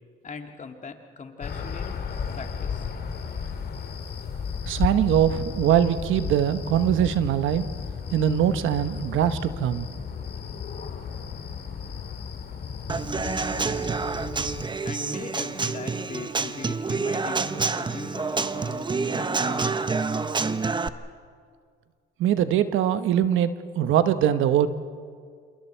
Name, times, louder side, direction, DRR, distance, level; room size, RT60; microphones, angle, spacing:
voice 1, 0.2-1.9 2.3-2.9 14.8-19.9, left 4 dB, 40° left, 5 dB, 2.0 m, -40 dB
sound 1, 1.4-14.7, left 6 dB, 55° left, 2.2 m, -34 dB
voice 2, 4.7-7.7 8.1-9.8 22.2-24.7, right 10 dB, 85° right, 11 dB, 1.0 m, -22 dB
Human voice / Acoustic guitar / Drum, 12.9-20.9, right 4 dB, 25° right, 0.8 m, -28 dB
28.0 x 27.5 x 4.5 m, 2.1 s
cardioid pair, 90°, 20 cm